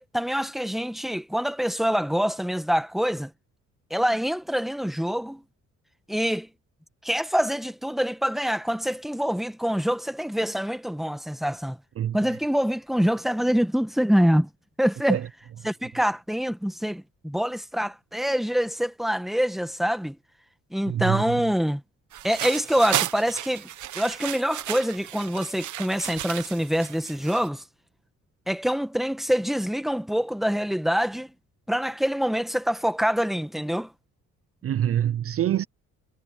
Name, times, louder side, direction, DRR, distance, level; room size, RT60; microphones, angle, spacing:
voice 1, 0.0-3.3 3.9-5.4 6.1-6.5 7.0-11.8 12.1-14.5 14.8-15.2 15.6-20.2 20.7-21.8 22.2-23.7 23.9-27.6 28.5-31.3 31.7-33.9, equal, ahead, 1.7 m, -25 dB
voice 2, 20.9-21.2 34.6-35.6, right 10 dB, 50° right, 0.6 m, -25 dB
sound 1, 22.1-27.5, right 13 dB, 75° right, 1.2 m, -33 dB
cardioid pair, 90°, 30 cm